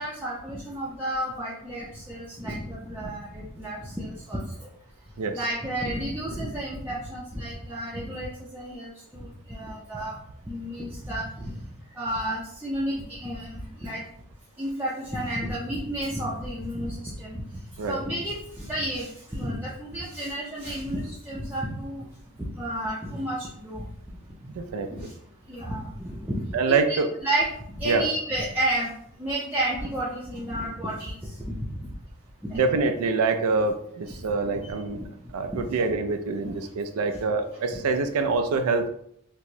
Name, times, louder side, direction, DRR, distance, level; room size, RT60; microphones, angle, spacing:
voice 1, 0.0-4.4 5.3-10.1 10.5-11.5 12.0-14.0 14.6-17.4 17.8-22.0 22.6-23.8 24.9-25.0 25.5-26.4 26.7-27.0 27.2-27.5 27.8-28.9 29.2-31.5 32.5-32.6 34.5-34.7 35.5-35.6 37.7-37.8, right 1 dB, 10° right, -7 dB, 0.5 m, -31 dB
voice 2, 24.5-25.1 26.5-27.1 27.9-28.0 32.5-35.0 35.3-38.9, right 4 dB, 85° right, 8 dB, 0.4 m, -25 dB
4.4 x 2.0 x 2.6 m, 0.71 s
head